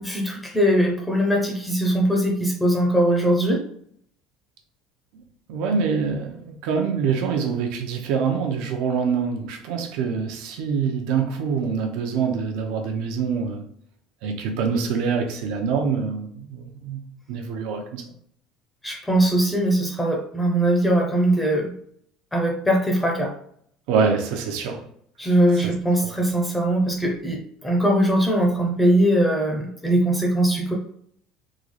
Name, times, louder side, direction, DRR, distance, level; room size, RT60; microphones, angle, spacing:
voice 1, 0.0-3.6 18.8-21.7 22.3-23.3 25.2-30.7, right 1 dB, 5° left, 0.7 m, -21 dB
voice 2, 5.5-13.6 14.2-17.0 17.3-18.0 23.9-24.8 25.6-25.7, right 6 dB, 75° right, 0.7 m, -25 dB
3.7 x 2.3 x 3.2 m
cardioid pair, 155°, 0 cm